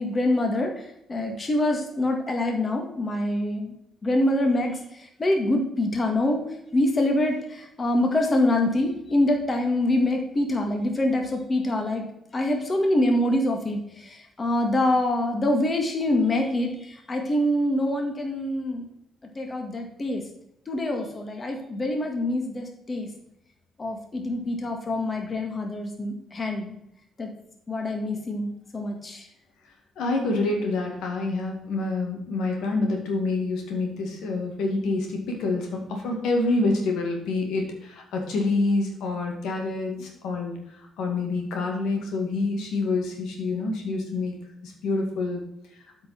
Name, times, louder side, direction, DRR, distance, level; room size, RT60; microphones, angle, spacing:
voice 1, 0.0-3.7 4.0-6.4 6.7-12.1 12.3-18.9 19.4-20.2 20.7-23.1 23.8-26.8 27.2-27.3 27.7-29.3, left 1 dB, 30° left, 3 dB, 1.9 m, -25 dB
voice 2, 30.0-40.6 41.0-44.4 44.6-45.4, left 3 dB, 85° left, 1 dB, 2.1 m, -27 dB
8.0 x 5.2 x 5.9 m, 0.80 s
cardioid pair, 90°, 0 cm